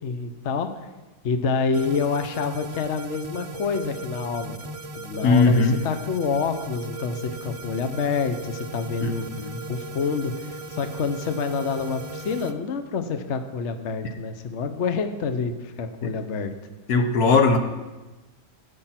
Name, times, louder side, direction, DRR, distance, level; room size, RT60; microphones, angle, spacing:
voice 1, 0.0-0.9 1.2-4.5 5.0-16.5, left 5 dB, 50° left, 8 dB, 1.1 m, -27 dB
sound 1, 1.7-12.5, right 1 dB, 50° right, 0.4 m, -37 dB
voice 2, 5.2-5.8 9.0-9.6 16.0-16.1 16.9-17.6, left 4 dB, 70° left, 6 dB, 1.6 m, -19 dB
15.0 x 9.0 x 5.9 m, 1.2 s
omnidirectional pair, 1.8 m